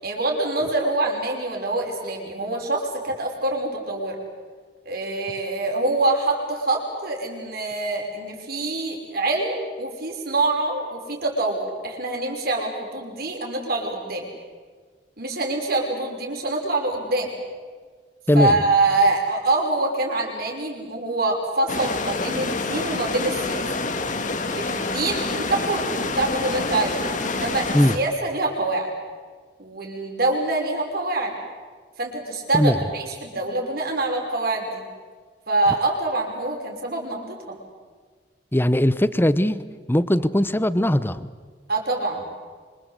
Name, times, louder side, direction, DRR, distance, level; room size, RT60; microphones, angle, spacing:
voice 1, 0.0-4.2 4.8-14.3 15.2-17.3 18.3-23.7 24.5-28.9 29.6-31.4 32.0-34.9 35.5-37.6 41.7-42.3, right 2 dB, 55° right, 5.9 m, -25 dB
voice 2, 18.3-18.6 27.7-28.0 32.5-32.8 38.5-39.6 39.9-41.3, left 1 dB, 10° left, 0.9 m, -19 dB
sound 1, 21.7-28.0, left 3 dB, 45° left, 2.0 m, -27 dB
26.5 x 26.0 x 8.2 m
head